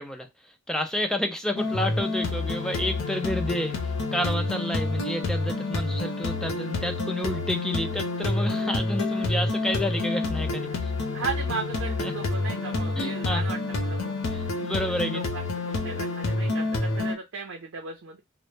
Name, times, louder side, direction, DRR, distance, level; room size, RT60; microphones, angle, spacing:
voice 1, 0.0-10.9 12.0-12.1 13.0-13.4 14.3-15.2, equal, 5° left, 0.3 m, -30 dB
sound 1, 1.5-17.1, left 2 dB, 90° left, 0.5 m, -28 dB
voice 2, 11.1-14.1 15.0-18.2, right 4 dB, 80° right, 0.6 m, -36 dB
2.0 x 2.0 x 3.1 m
head